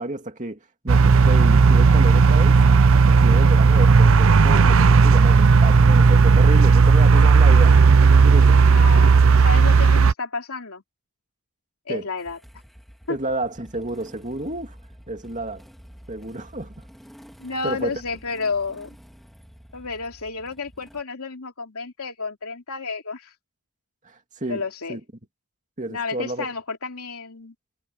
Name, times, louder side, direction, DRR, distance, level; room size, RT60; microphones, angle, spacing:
voice 1, 0.0-2.6 3.0-8.6 11.9-12.1 13.1-14.8 15.1-15.6 16.1-16.8 17.6-18.0 24.0-24.6 24.9-25.0 25.8-26.5, right 1 dB, 35° right, 2.5 m, -31 dB
sound 1, 0.9-10.1, right 4 dB, 65° right, 0.5 m, -14 dB
voice 2, 8.7-9.1 9.4-10.8 11.9-12.4 13.1-13.2 17.4-18.9 19.7-23.3 24.4-25.0 25.9-27.5, left 4 dB, 80° left, 3.0 m, -31 dB
Motorcycle / Engine starting, 12.2-21.0, equal, ahead, 3.3 m, -48 dB
head